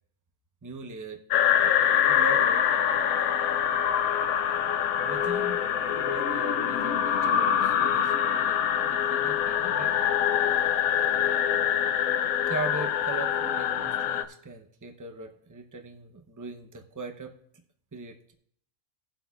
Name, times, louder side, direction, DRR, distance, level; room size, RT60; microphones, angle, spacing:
voice 1, 0.6-1.2 1.6-1.7 2.1-3.0 4.8-5.6 5.9-10.2 12.5-17.3 17.9-18.3, right 3 dB, 25° right, 4 dB, 0.4 m, -40 dB
sound 1, 1.3-14.2, left 9 dB, 80° left, 1.0 m, -25 dB
19.0 x 7.7 x 2.3 m, 0.65 s
omnidirectional pair, 1.5 m